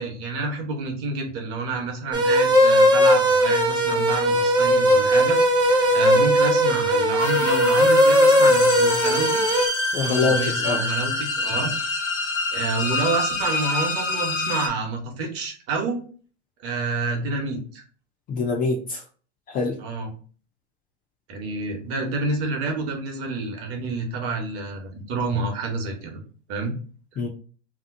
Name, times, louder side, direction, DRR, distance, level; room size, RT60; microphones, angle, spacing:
voice 1, 0.0-5.4 5.7-9.4 10.0-11.7 12.5-16.0 16.6-17.8 19.8-20.1 21.3-26.2 26.5-26.7, right 3 dB, 40° right, 2 dB, 1.0 m, -28 dB
sound 1, 2.1-9.7, equal, 10° right, 0.7 m, -18 dB
sound 2, 7.2-14.7, left 3 dB, 70° left, 0.9 m, -27 dB
voice 2, 9.9-10.8 18.3-19.0 19.5-19.8 27.2-27.3, left 4 dB, 25° left, 2 dB, 0.4 m, -24 dB
2.9 x 2.0 x 3.6 m, 0.40 s
hypercardioid pair, 105°, 36 cm